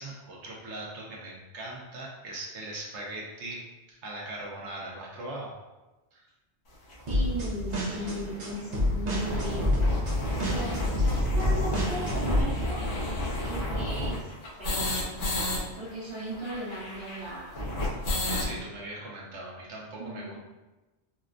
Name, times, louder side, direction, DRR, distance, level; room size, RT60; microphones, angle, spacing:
voice 1, 0.0-3.6 3.9-5.6 6.1-6.3 18.4-20.4, right 2 dB, 85° right, -3 dB, 1.1 m, -40 dB
sound 1, 6.9-7.0 7.7-7.8 8.0-8.1 8.4-8.5 8.9-15.6 15.9-16.0 16.2-18.5, left 1 dB, 75° left, 1.1 m, -31 dB
sound 2, 7.1-12.4, left 1 dB, 45° right, 0.7 m, -28 dB
voice 2, 7.1-10.0 10.4-12.9 13.4-14.3 14.6-17.7 20.0-20.4, equal, 60° right, -8 dB, 1.4 m, -38 dB
4.2 x 2.1 x 2.5 m, 1.1 s
omnidirectional pair, 1.2 m